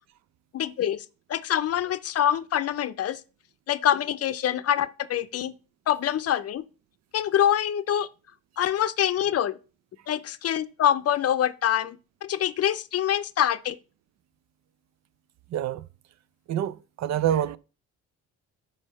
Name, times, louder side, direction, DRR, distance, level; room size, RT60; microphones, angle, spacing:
voice 1, 0.5-1.0 1.3-3.2 3.7-5.5 5.9-6.6 7.1-8.1 8.6-9.6 10.1-13.8, left 10 dB, 55° left, 0.5 m, -25 dB
voice 2, 15.5-15.8 16.5-17.6, right 10 dB, 65° right, 0.5 m, -26 dB
5.5 x 5.2 x 5.3 m
cardioid pair, 90°, 30 cm